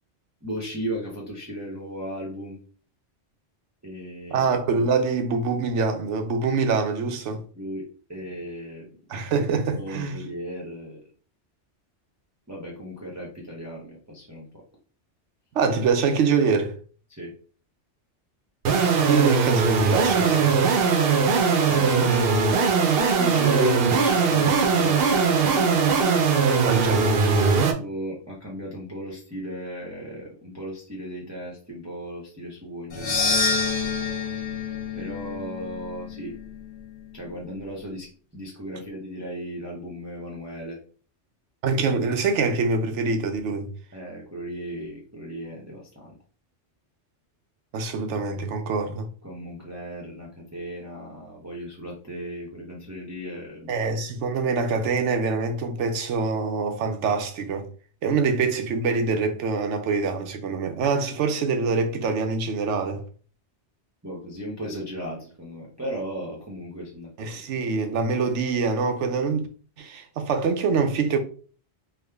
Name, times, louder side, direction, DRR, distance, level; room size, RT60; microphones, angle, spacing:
voice 1, 0.4-2.6 3.8-4.5 7.3-8.9 9.7-11.0 12.5-14.5 17.1-17.3 21.7-22.4 22.8-26.0 27.8-33.4 34.9-36.4 37.1-40.8 43.9-46.2 49.2-53.7 64.0-67.4, equal, 15° right, 0.6 m, -36 dB
voice 2, 4.3-7.4 9.1-10.2 15.5-16.8 18.9-20.6 26.6-27.1 41.6-43.7 47.7-49.1 53.7-57.7 58.0-63.0 67.2-69.5 69.8-71.2, right 4 dB, 85° right, 1.0 m, -25 dB
sound 1, 18.7-27.7, right 5 dB, 60° right, 0.7 m, -20 dB
sound 2, 32.9-37.2, left 4 dB, 75° left, 1.1 m, -28 dB
3.5 x 2.1 x 3.4 m
omnidirectional pair, 1.2 m